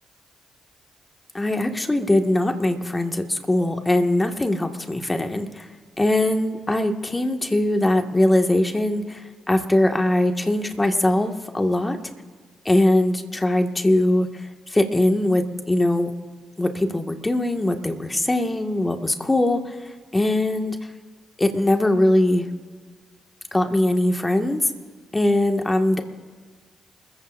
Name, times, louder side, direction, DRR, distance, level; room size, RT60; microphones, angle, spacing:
voice 1, 1.3-5.7 6.0-9.2 9.5-12.0 12.7-14.3 14.7-16.1 16.6-19.6 20.1-20.8 21.4-22.5 23.5-24.6 25.1-26.0, left 1 dB, 20° left, 5 dB, 1.9 m, -21 dB
28.5 x 15.0 x 2.7 m, 1.5 s
hypercardioid pair, 40°, 0 cm